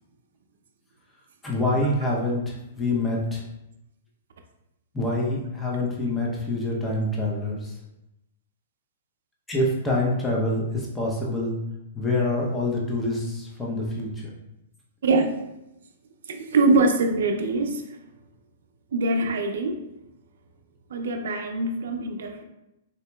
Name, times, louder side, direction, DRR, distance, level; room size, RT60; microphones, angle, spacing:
voice 1, 1.4-3.4 4.9-7.7 9.5-11.5 11.9-14.3, left 1 dB, 10° left, 0.6 m, -26 dB
voice 2, 15.0-15.4 16.3-17.9 18.9-19.9 20.9-22.4, right 3 dB, 75° right, 0.4 m, -23 dB
3.9 x 2.8 x 2.2 m
hypercardioid pair, 150°, 0 cm